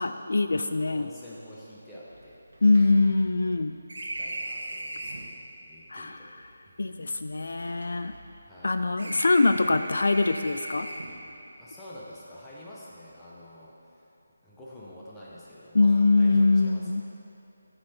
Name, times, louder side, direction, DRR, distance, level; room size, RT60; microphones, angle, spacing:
voice 1, 0.0-1.1 2.6-3.8 5.9-6.2 6.8-8.1 8.6-10.9 15.7-17.0, left 3 dB, 70° left, 9 dB, 0.3 m, -23 dB
voice 2, 0.9-2.9 3.9-6.3 6.6-6.7 8.5-8.9 11.6-14.1 14.4-17.1, left 1 dB, 10° left, -8 dB, 0.9 m, -47 dB
sound 1, 1.3-1.4 1.6-1.7 2.1-5.4 6.2-8.6 9.0-11.3, right 1 dB, 75° right, 1.2 m, -39 dB
9.7 x 5.6 x 4.3 m, 2.9 s
figure-of-eight pair, 165°, 0 cm